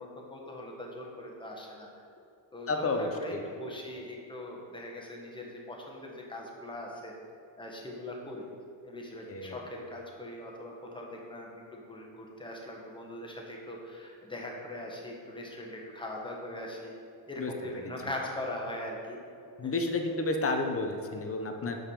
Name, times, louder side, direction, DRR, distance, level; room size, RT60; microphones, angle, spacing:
voice 1, 0.0-1.9 2.5-7.1 7.6-8.5 8.8-16.9 17.3-19.2 19.6-19.7, left 1 dB, 10° left, -2 dB, 1.5 m, -41 dB
voice 2, 2.7-3.4 9.3-9.6 17.4-17.5 19.6-21.8, left 3 dB, 30° left, 4 dB, 0.9 m, -31 dB
7.2 x 5.8 x 4.9 m, 2.6 s
cardioid pair, 100°, 49 cm